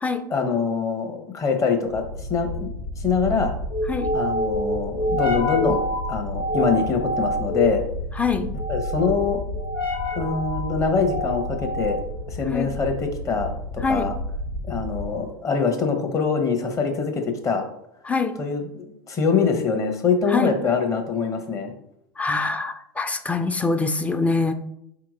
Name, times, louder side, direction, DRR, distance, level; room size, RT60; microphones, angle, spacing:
voice 1, 0.3-2.7 3.0-3.5 4.1-5.8 6.1-7.8 8.7-9.4 10.2-12.0 12.3-12.9 13.2-14.1 14.6-17.6 18.4-21.7, left 5 dB, 25° left, 4 dB, 0.9 m, -24 dB
sound 1, 1.9-15.3, equal, 85° left, 1.1 m, -28 dB
voice 2, 8.2-8.5 12.5-12.7 13.8-14.1 18.0-18.4 20.3-20.6 22.2-24.5, left 4 dB, 10° left, 8 dB, 0.4 m, -24 dB
4.3 x 2.9 x 3.8 m, 0.75 s
hypercardioid pair, 85°, 12 cm